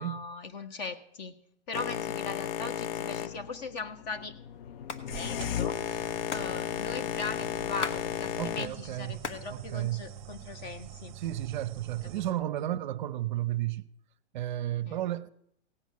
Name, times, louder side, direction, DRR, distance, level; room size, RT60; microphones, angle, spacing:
voice 1, 0.0-1.3 1.7-4.4 5.1-11.1 12.0-12.7 14.8-15.0, left 4 dB, 40° left, 1.3 m, -39 dB
Boat Water vehicle, 1.7-8.7, left 10 dB, 55° left, 0.5 m, -34 dB
Hands, 4.7-5.0 5.3-5.4 5.6-8.0 8.3-9.5 9.8-10.6 11.2-11.8, left 5 dB, 75° left, 1.5 m, -39 dB
sound 1, 5.1-12.3, right 10 dB, 15° right, 0.9 m, -46 dB
voice 2, 8.4-9.2 9.5-10.0 11.2-13.8 14.3-15.3, right 13 dB, 40° right, 0.6 m, -33 dB
17.0 x 6.3 x 8.4 m
hypercardioid pair, 155°, 35 cm